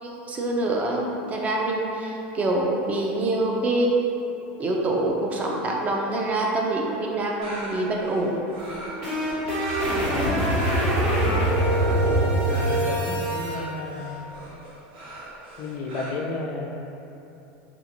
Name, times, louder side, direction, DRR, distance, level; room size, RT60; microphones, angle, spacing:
voice 1, 0.0-4.0 4.6-8.3, right 2 dB, 25° right, -1 dB, 0.4 m, -25 dB
sound 1, 7.4-16.1, right 1 dB, 80° right, 0.7 m, -40 dB
sound 2, 8.6-13.5, right 1 dB, 55° right, 1.3 m, -23 dB
voice 2, 10.0-11.5 12.0-14.2 15.6-16.9, left 3 dB, 50° left, 1 dB, 0.3 m, -33 dB
2.8 x 2.5 x 2.5 m, 2.9 s
supercardioid pair, 120°, 6 cm